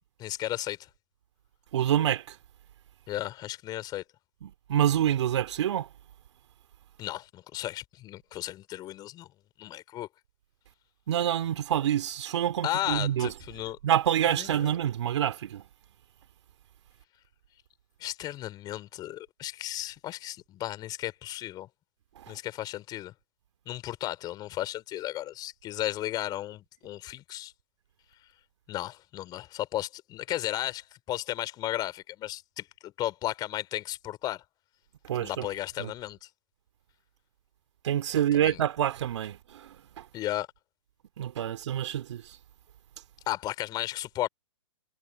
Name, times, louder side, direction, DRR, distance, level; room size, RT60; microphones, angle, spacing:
voice 1, 0.2-0.9 3.1-4.0 7.0-9.3 9.6-10.1 12.6-13.8 14.3-14.5 18.0-21.7 22.3-23.1 23.7-27.5 28.7-34.4 35.2-36.3 38.3-38.6 40.1-40.5 43.3-44.3, left 14 dB, 25° left, 3.1 m, -34 dB
voice 2, 1.7-2.4 4.4-5.9 11.1-13.3 13.8-15.6 22.2-22.4 35.0-35.5 35.8-35.9 37.8-40.1 41.2-42.4, right 10 dB, 55° right, 2.4 m, -27 dB
hypercardioid pair, 130°, 17 cm